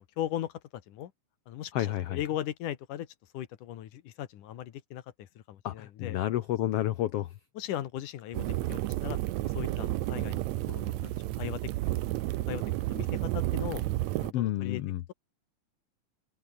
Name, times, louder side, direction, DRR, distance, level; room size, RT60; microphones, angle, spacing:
voice 1, 0.2-0.5 0.9-1.1 1.5-3.1 3.3-6.2 7.6-11.6 11.9-12.0 12.5-12.6 12.9-13.8 14.2-14.8, left 12 dB, 75° left, 2.8 m, -38 dB
voice 2, 1.7-2.2 5.6-7.3 14.3-15.0, left 13 dB, 90° left, 1.3 m, -30 dB
sound 1, 8.3-14.3, right 17 dB, 75° right, 1.7 m, -31 dB
open air
omnidirectional pair, 3.8 m